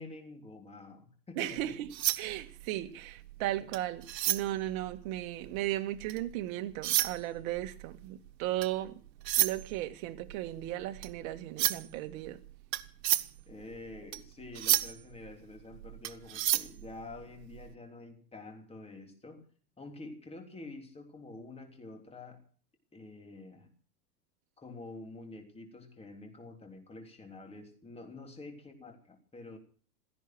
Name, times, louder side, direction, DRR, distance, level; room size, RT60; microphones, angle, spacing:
voice 1, 0.0-1.7 3.6-3.7 13.5-19.5 19.8-22.4 22.9-23.7 24.6-29.6, left 2 dB, 10° left, 3.3 m, -48 dB
voice 2, 1.4-1.9 2.2-9.0 9.4-12.4, right 14 dB, 55° right, 1.9 m, -36 dB
sound 1, 1.6-6.3 6.7-17.7, right 13 dB, 85° right, 1.4 m, -33 dB
16.5 x 14.0 x 6.0 m
supercardioid pair, 140°, 48 cm